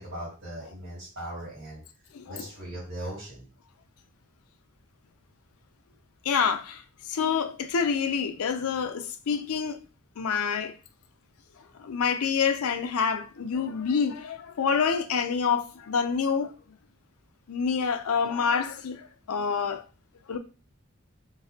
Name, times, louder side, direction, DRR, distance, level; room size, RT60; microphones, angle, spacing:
voice 1, 0.0-1.8 2.3-3.5, right 1 dB, 65° right, 2.1 m, -39 dB
voice 2, 2.1-2.5 6.2-6.8 7.1-9.8 10.2-10.7 11.8-16.5 17.5-19.8 20.3-20.4, left 6 dB, 85° left, 0.5 m, -27 dB
3.9 x 3.6 x 2.7 m
head